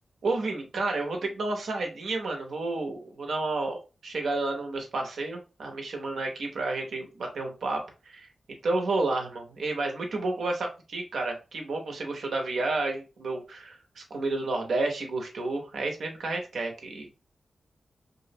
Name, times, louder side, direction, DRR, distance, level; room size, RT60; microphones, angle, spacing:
voice 1, 0.2-3.8 4.0-17.1, right 2 dB, 85° right, 2 dB, 0.6 m, -31 dB
2.5 x 2.0 x 2.6 m, 0.31 s
cardioid pair, 55°, 0 cm